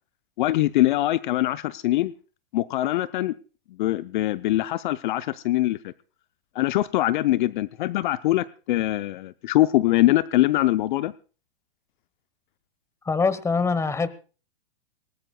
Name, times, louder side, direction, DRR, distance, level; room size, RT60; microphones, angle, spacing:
voice 1, 0.4-2.1 2.5-3.3 3.8-5.9 6.5-11.1, left 16 dB, 55° left, 14 dB, 0.6 m, -23 dB
voice 2, 13.0-14.1, left 4 dB, 10° left, 16 dB, 1.1 m, -23 dB
22.5 x 18.5 x 2.2 m, 0.36 s
hypercardioid pair, 120°, 29 cm